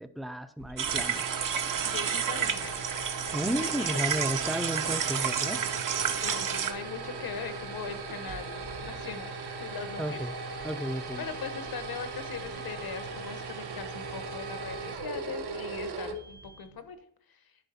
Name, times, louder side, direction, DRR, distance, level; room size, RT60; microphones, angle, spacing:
voice 1, 0.0-1.4 3.3-5.6 10.0-10.3 10.6-11.3, equal, ahead, 10 dB, 0.3 m, -33 dB
sound 1, 0.6-16.8, right 3 dB, 80° right, 1.0 m, -39 dB
sound 2, 0.8-6.7, right 8 dB, 55° right, 0.6 m, -30 dB
voice 2, 1.8-2.8 3.2-4.1 6.2-10.2 10.6-10.7 11.2-17.0 17.3-17.4, left 6 dB, 65° left, 10 dB, 0.9 m, -41 dB
10.5 x 4.0 x 4.1 m, 0.63 s
wide cardioid pair, 145°, 39 cm